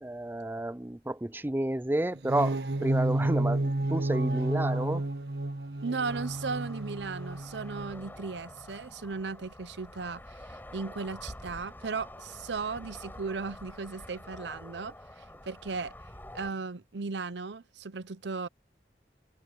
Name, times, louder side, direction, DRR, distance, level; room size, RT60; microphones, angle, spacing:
voice 1, 0.0-5.0, right 1 dB, 10° right, 0.5 m, -31 dB
sound 1, 2.1-8.1, right 2 dB, 70° right, 1.5 m, -31 dB
voice 2, 5.8-10.2 10.7-14.9 15.4-15.9 16.3-18.5, right 4 dB, 85° right, 0.8 m, -36 dB
sound 2, 6.1-16.5, left 1 dB, 10° left, 6.6 m, -47 dB
open air
head